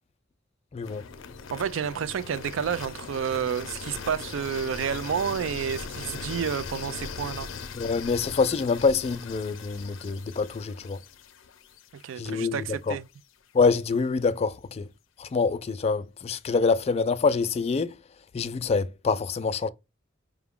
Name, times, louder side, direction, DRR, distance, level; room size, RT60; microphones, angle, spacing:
voice 1, 0.7-1.0 7.7-11.0 12.2-13.0 13.5-14.9 15.2-18.0 18.3-19.7, left 4 dB, 30° left, 0.3 m, -26 dB
sound 1, 0.8-12.8, left 5 dB, 85° left, 0.5 m, -40 dB
voice 2, 1.5-7.5 11.9-13.1, right 7 dB, 85° right, 0.4 m, -30 dB
4.8 x 2.3 x 3.5 m
head